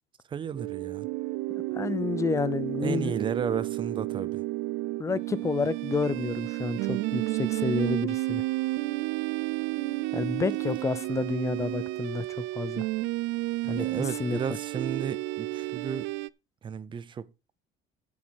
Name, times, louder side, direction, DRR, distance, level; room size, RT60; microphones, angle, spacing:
voice 1, 0.3-1.1 2.8-4.4 10.3-10.4 13.7-16.1 16.6-17.3, right 7 dB, 25° right, 0.7 m, -33 dB
sound 1, 0.6-16.3, right 20 dB, 80° right, 0.5 m, -31 dB
voice 2, 1.5-3.1 5.0-8.4 10.1-12.9 13.7-13.8 14.2-14.4, left 4 dB, 15° left, 0.5 m, -30 dB
10.5 x 7.2 x 4.7 m
cardioid pair, 175°, 19 cm